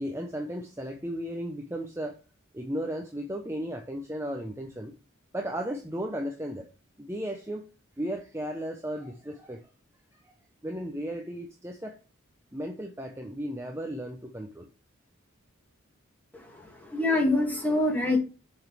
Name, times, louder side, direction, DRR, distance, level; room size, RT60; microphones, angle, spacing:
voice 1, 0.0-2.2 2.5-4.9 5.3-6.7 7.0-7.6 8.0-9.6 10.1-10.3 10.6-12.0 12.5-14.7, equal, 10° right, 3 dB, 0.7 m, -35 dB
voice 2, 16.3-18.2, left 2 dB, 10° left, 0 dB, 2.1 m, -26 dB
7.5 x 6.2 x 3.3 m, 0.33 s
head